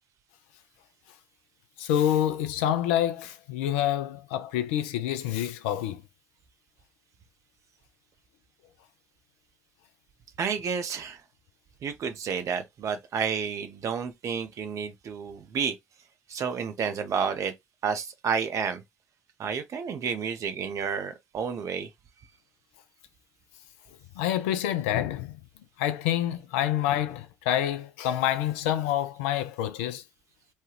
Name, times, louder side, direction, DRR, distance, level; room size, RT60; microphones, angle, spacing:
voice 1, 1.8-6.0 24.2-25.4 25.8-30.0, left 11 dB, 70° left, 0.4 m, -27 dB
voice 2, 10.4-11.2 11.8-15.7 16.3-17.5 17.8-18.8 19.4-21.9, right 6 dB, 45° right, 0.6 m, -30 dB
3.2 x 2.3 x 3.0 m
figure-of-eight pair, 50°, 7 cm